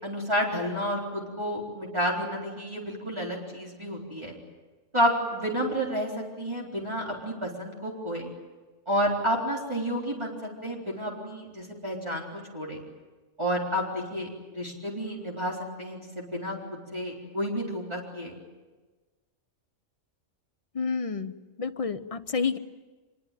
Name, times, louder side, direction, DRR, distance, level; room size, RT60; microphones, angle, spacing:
voice 1, 0.0-4.3 4.9-8.3 8.9-12.8 13.4-18.4, equal, 20° right, -3 dB, 3.9 m, -30 dB
voice 2, 20.7-22.6, left 5 dB, 30° left, 10 dB, 0.9 m, -30 dB
25.5 x 22.5 x 9.2 m, 1.3 s
omnidirectional pair, 1.3 m